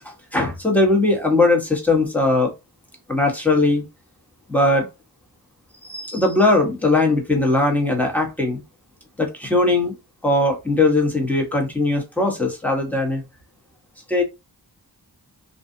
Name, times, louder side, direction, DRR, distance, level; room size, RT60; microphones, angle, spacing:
voice 1, 0.0-2.5 3.1-3.8 4.5-4.9 5.8-8.6 9.2-9.9 10.2-13.2 14.1-14.2, left 2 dB, 5° left, 1.1 m, -19 dB
2.6 x 2.4 x 2.5 m
cardioid pair, 50°, 41 cm